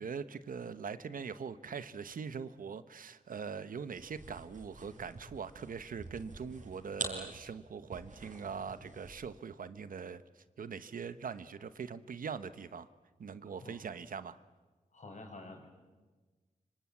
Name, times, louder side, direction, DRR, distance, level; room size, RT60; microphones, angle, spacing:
voice 1, 0.0-12.9 13.2-14.4, right 6 dB, 85° right, 13 dB, 1.1 m, -42 dB
sound 1, 3.9-9.4, right 3 dB, 65° right, 5.3 m, -46 dB
voice 2, 14.9-15.7, left 2 dB, 60° left, 4 dB, 6.2 m, -48 dB
25.5 x 25.0 x 8.6 m, 1.3 s
wide cardioid pair, 80°, 14 cm